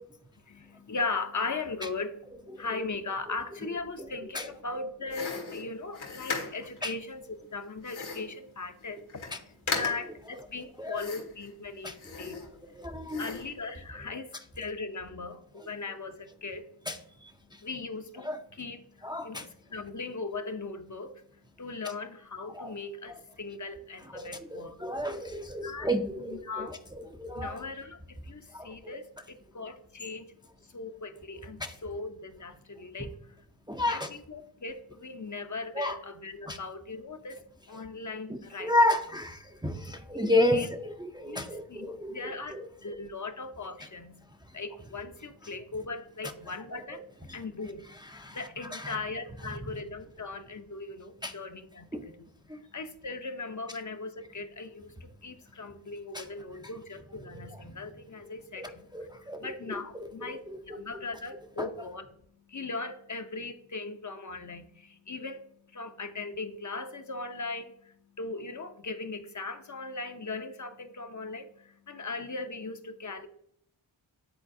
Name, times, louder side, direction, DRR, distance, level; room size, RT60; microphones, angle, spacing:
voice 1, 0.5-16.7 17.5-24.8 25.1-25.3 25.6-25.9 26.2-26.8 27.3-30.3 30.6-33.4 33.8-38.7 40.2-40.7 41.2-44.2 44.5-47.0 47.3-62.1 62.5-73.3, left 3 dB, 40° left, 7 dB, 0.7 m, -39 dB
sound 1, 5.1-6.8 7.8-8.4 8.8-8.9 9.1-9.4 9.7-10.2 10.9-11.5 11.9-12.7 13.1-13.6, left 4 dB, 75° left, 1.5 m, -37 dB
voice 2, 12.7-13.2 16.9-17.0 18.2-18.4 19.0-19.4 22.5-22.7 24.1-26.7 27.2-27.6 28.5-28.9 31.6-31.7 33.7-34.1 35.8-36.0 36.5-36.6 38.3-42.2 42.5-42.6 48.2-48.4 48.7-48.9 51.2-51.3 51.9-52.0 56.1-56.2 58.6-59.4 59.7-59.8 60.7-60.8 61.6-61.7, left 1 dB, 10° right, 5 dB, 0.5 m, -31 dB
9.8 x 3.9 x 2.6 m, 0.70 s
cardioid pair, 45°, 48 cm